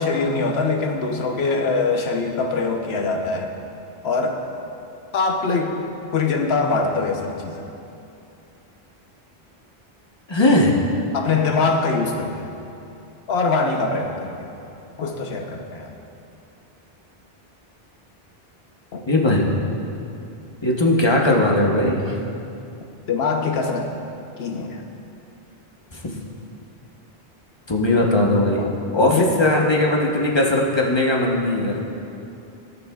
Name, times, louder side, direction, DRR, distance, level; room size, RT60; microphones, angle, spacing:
voice 1, 0.0-3.5 4.0-4.4 5.1-5.7 6.1-7.7 11.1-12.5 13.3-14.5 15.0-15.9 18.9-19.0 23.1-23.9 24.4-24.8 28.6-28.7 29.1-29.4, left 4 dB, 85° left, 3 dB, 1.1 m, -23 dB
voice 2, 10.3-10.7 19.1-19.5 20.6-22.1 27.7-28.6 28.9-31.8, left 1 dB, 30° left, -2 dB, 1.0 m, -18 dB
17.0 x 6.9 x 2.3 m, 2.7 s
omnidirectional pair, 1.0 m